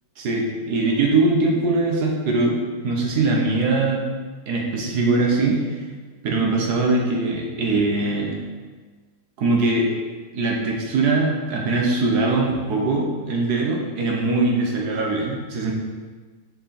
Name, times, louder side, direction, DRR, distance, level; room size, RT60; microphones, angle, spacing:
voice 1, 0.2-4.0 4.5-5.6 6.2-8.4 9.4-9.9 10.3-15.7, right 3 dB, 70° right, 0 dB, 1.6 m, -21 dB
6.2 x 4.7 x 4.3 m, 1.4 s
omnidirectional pair, 1.8 m